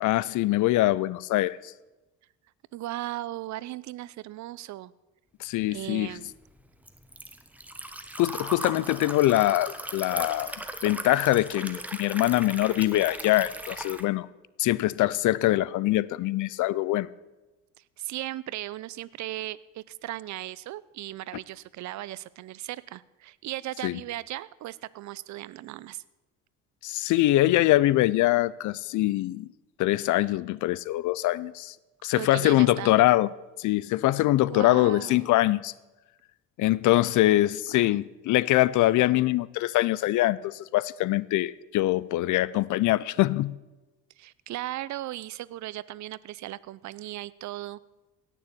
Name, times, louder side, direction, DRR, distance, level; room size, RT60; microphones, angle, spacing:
voice 1, 0.0-1.7 5.4-6.1 8.2-10.5 10.8-14.3 14.6-17.1 23.8-24.0 26.8-29.5 29.8-31.7 32.0-33.3 33.6-35.7 36.6-43.6, left 16 dB, 65° left, 0.7 m, -23 dB
voice 2, 2.7-4.9 5.7-6.3 18.0-26.0 32.2-32.9 34.5-35.3 37.0-37.1 37.7-38.0 44.2-47.8, right 15 dB, 60° right, 0.7 m, -37 dB
Liquid, 5.8-14.0, right 1 dB, 5° right, 1.4 m, -38 dB
17.0 x 7.0 x 8.6 m
supercardioid pair, 85°, 33 cm